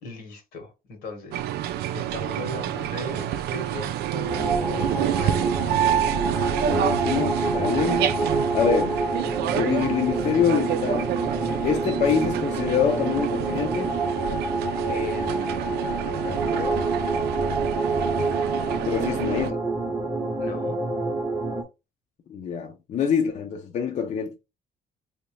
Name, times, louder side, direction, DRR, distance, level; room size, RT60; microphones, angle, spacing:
voice 1, 0.0-1.6 1.9-6.0 14.9-16.8 20.4-20.8, left 3 dB, 80° left, 1.5 m, -37 dB
sound 1, 1.3-19.5, right 11 dB, 75° right, 0.4 m, -28 dB
sound 2, 4.3-21.6, right 3 dB, 10° right, 0.8 m, -27 dB
voice 2, 6.6-8.2 8.5-9.0 9.5-11.1 11.6-14.0 18.8-19.6 22.3-24.3, left 7 dB, 45° left, 0.6 m, -25 dB
3.2 x 2.8 x 3.1 m
cardioid pair, 110°, 17 cm